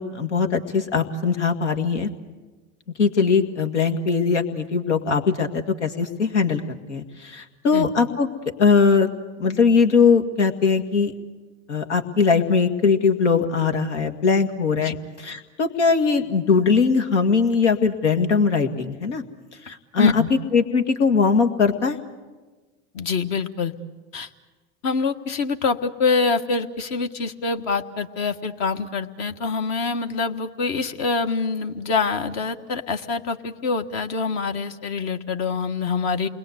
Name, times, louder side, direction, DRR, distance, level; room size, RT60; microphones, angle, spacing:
voice 1, 0.0-2.1 3.0-6.6 6.9-8.3 8.6-9.1 9.4-11.1 11.7-19.2 19.7-22.0, left 5 dB, 85° left, 6 dB, 2.0 m, -20 dB
voice 2, 20.0-20.3 22.9-23.7 24.1-24.3 24.8-36.3, left 4 dB, 50° left, 6 dB, 1.7 m, -25 dB
29.0 x 21.0 x 8.1 m, 1.3 s
hypercardioid pair, 90°, 34 cm